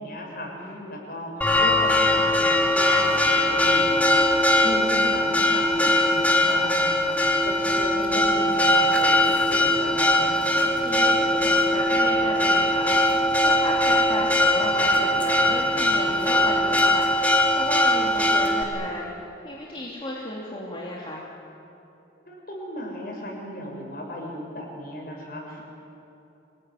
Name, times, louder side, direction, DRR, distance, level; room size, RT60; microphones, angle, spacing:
voice 1, 0.0-10.4 22.3-25.6, equal, 50° left, 0 dB, 6.7 m, -36 dB
voice 2, 0.6-1.0 10.6-19.1 19.4-21.3, left 1 dB, 30° left, -4 dB, 3.0 m, -34 dB
Church bell, 1.4-18.6, left 1 dB, 10° left, 2.4 m, -21 dB
26.5 x 19.5 x 9.3 m, 2.9 s
head